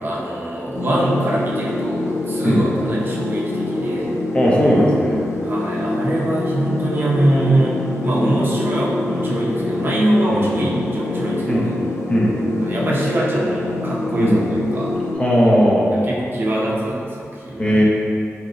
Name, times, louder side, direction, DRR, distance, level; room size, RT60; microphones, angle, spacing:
voice 1, 0.0-4.1 5.4-7.8 8.0-11.7 12.6-15.0 15.9-17.8, right 1 dB, 45° right, -4 dB, 0.5 m, -22 dB
sound 1, 0.7-15.1, left 2 dB, 75° left, 0.4 m, -25 dB
voice 2, 4.3-5.2 10.3-10.5 11.5-11.7 12.1-12.3 14.2-14.4 15.2-16.0 17.6-17.8, equal, 20° left, -5 dB, 0.6 m, -17 dB
2.8 x 2.1 x 3.7 m, 2.4 s
wide cardioid pair, 150°, 5 cm